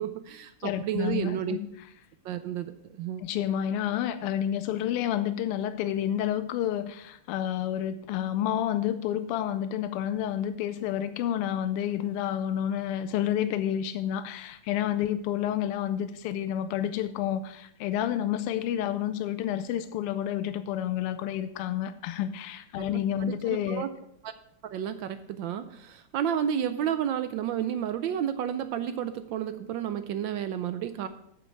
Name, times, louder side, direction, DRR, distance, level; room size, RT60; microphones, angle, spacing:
voice 1, 0.0-1.6 2.2-2.7 3.0-3.2 22.8-23.9 24.2-24.3 24.6-31.1, right 9 dB, 75° right, 10 dB, 1.1 m, -31 dB
voice 2, 0.6-1.7 3.2-23.9, left 10 dB, 90° left, 11 dB, 1.5 m, -29 dB
8.5 x 8.1 x 4.5 m, 0.73 s
omnidirectional pair, 2.4 m